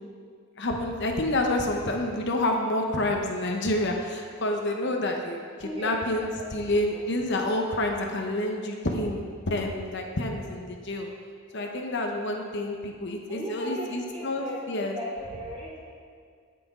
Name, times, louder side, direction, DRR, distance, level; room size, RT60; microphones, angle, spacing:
voice 1, 0.6-11.1 11.5-15.0, left 1 dB, 55° left, 2 dB, 0.9 m, -28 dB
voice 2, 5.6-7.0 11.5-11.8 13.3-15.8, equal, 30° right, -7 dB, 2.8 m, -38 dB
17.0 x 6.0 x 3.8 m, 2.1 s
head